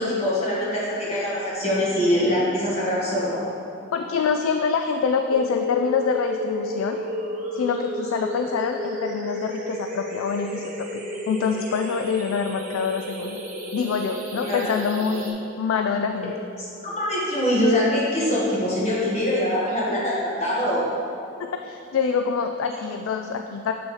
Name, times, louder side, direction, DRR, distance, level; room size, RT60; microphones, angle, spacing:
voice 1, 0.0-3.4 14.4-14.7 16.6-20.9, left 1 dB, 30° left, -7 dB, 1.6 m, -23 dB
voice 2, 3.9-7.0 7.5-11.0 11.3-13.4 13.7-16.3 21.4-23.7, left 5 dB, 85° left, 5 dB, 0.3 m, -25 dB
sound 1, 5.3-15.3, equal, 40° right, 0.9 m, -32 dB
7.9 x 6.1 x 3.3 m, 2.8 s
head